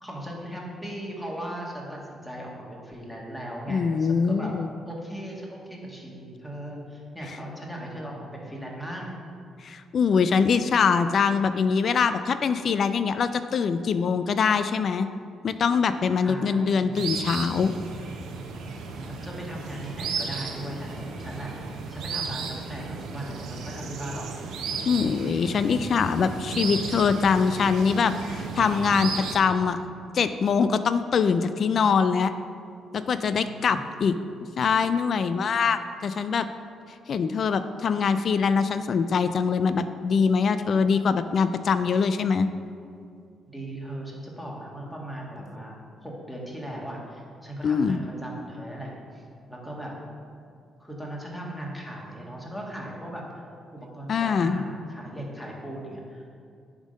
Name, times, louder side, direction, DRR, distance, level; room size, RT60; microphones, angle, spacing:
voice 1, 0.0-4.5 4.8-9.1 16.2-16.9 19.0-21.5 21.9-24.3 24.7-24.9 26.5-26.6 33.3-33.9 43.5-45.7 46.0-49.9 50.8-53.5 53.7-56.3, right 1 dB, 5° left, -3 dB, 1.7 m, -38 dB
voice 2, 3.7-4.7 9.6-15.1 15.4-17.7 24.9-29.8 30.1-32.3 32.9-34.2 34.6-36.5 37.1-42.5 47.6-48.0 54.1-54.6, left 5 dB, 55° left, 11 dB, 0.3 m, -23 dB
sound 1, 16.9-29.3, right 4 dB, 85° right, 0.8 m, -34 dB
9.8 x 3.7 x 5.2 m, 2.4 s
cardioid pair, 90°, 0 cm